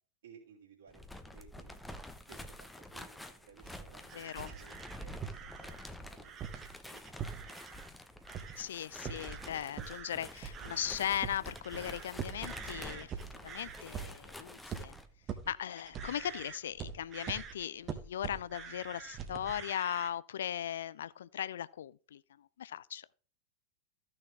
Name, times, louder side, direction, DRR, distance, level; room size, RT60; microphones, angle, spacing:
voice 1, 0.2-1.8 2.3-6.4 6.8-7.5, right 6 dB, 60° right, 3.5 m, -59 dB
sound 1, 0.9-15.1, left 1 dB, 5° left, 0.9 m, -48 dB
sound 2, 4.0-7.9 8.2-8.7 8.9-20.1, right 7 dB, 30° right, 1.3 m, -44 dB
voice 2, 4.1-4.5 8.6-13.1 13.4-14.9 15.5-23.1, left 10 dB, 60° left, 0.4 m, -38 dB
14.0 x 6.4 x 3.5 m
figure-of-eight pair, 90°, 0 cm